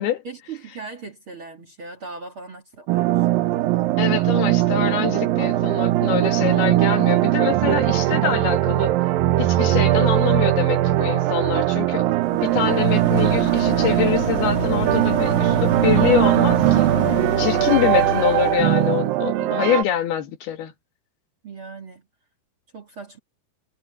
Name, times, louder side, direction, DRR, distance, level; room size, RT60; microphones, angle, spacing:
voice 1, 0.2-3.2 17.8-18.3 21.4-22.0 22.7-23.2, right 4 dB, 40° right, 2.1 m, -38 dB
sound 1, 2.9-19.8, right 15 dB, 75° right, 2.2 m, -20 dB
voice 2, 4.0-8.9 9.4-12.1 12.4-16.9 17.4-20.7, left 10 dB, 70° left, 3.6 m, -25 dB
sound 2, 12.3-18.9, left 3 dB, 40° left, 1.9 m, -29 dB
omnidirectional pair, 4.9 m